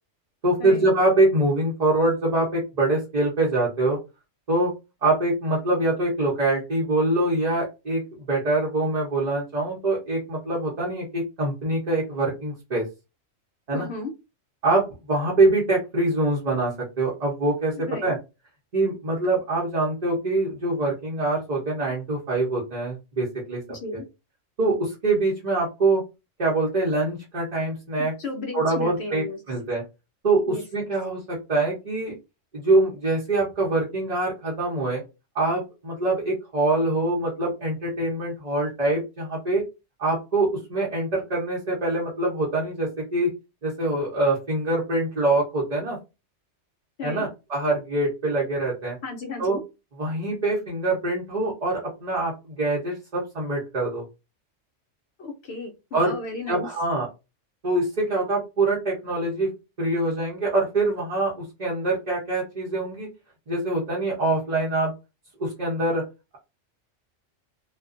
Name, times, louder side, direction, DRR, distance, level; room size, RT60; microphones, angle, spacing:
voice 1, 0.4-4.0 4.5-4.7 5.0-8.0 8.3-12.9 13.7-13.9 14.6-18.2 18.7-23.6 24.6-26.0 26.4-28.1 28.5-29.8 30.2-32.1 32.5-35.0 35.3-39.6 40.0-43.3 43.6-46.0 47.0-49.0 49.4-49.6 50.0-54.0 55.9-56.2 56.5-57.1 57.6-59.5 59.8-63.1 63.5-64.9 65.4-66.0, right 2 dB, 40° right, -5 dB, 0.7 m, -24 dB
voice 2, 13.7-14.1 17.7-18.1 23.7-24.0 28.2-29.4 30.5-30.6 47.0-47.2 49.0-49.6 55.2-56.7, left 3 dB, 65° left, 3 dB, 0.8 m, -34 dB
2.4 x 2.2 x 2.4 m, 0.26 s
omnidirectional pair, 1.3 m